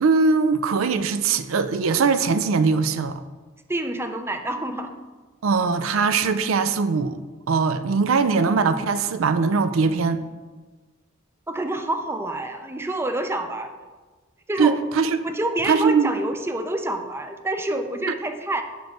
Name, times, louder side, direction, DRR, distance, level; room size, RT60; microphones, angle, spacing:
voice 1, 0.0-3.2 5.4-7.2 7.5-10.2 14.6-15.2 15.6-16.1, right 4 dB, 85° right, 12 dB, 0.4 m, -21 dB
voice 2, 3.7-4.9 11.5-13.7 14.5-14.8 15.2-18.6, right 1 dB, 10° right, 7 dB, 0.4 m, -27 dB
6.1 x 5.2 x 4.6 m, 1.3 s
head